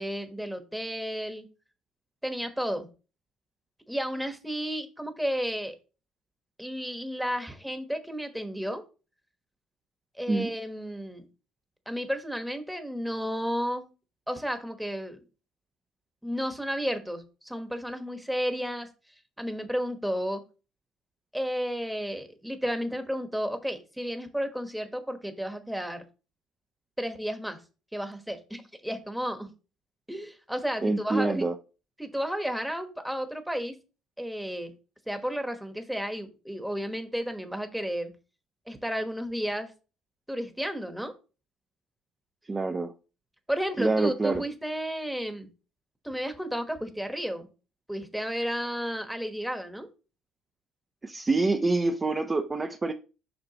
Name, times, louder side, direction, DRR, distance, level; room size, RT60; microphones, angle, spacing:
voice 1, 0.0-1.5 2.2-2.9 3.9-5.8 6.6-8.8 10.2-11.3 11.9-13.9 14.3-15.2 16.2-18.9 19.4-20.4 21.3-26.0 27.0-27.6 27.9-29.5 30.1-31.5 32.0-33.7 34.2-34.7 35.1-38.1 38.7-39.7 40.3-41.1 43.5-45.5 46.0-47.5 47.9-49.9, equal, ahead, 1.1 m, -32 dB
voice 2, 30.8-31.5 42.5-42.9 43.8-44.4 51.0-52.9, right 3 dB, 20° right, 0.6 m, -26 dB
7.8 x 5.8 x 2.9 m
cardioid pair, 125°, 0 cm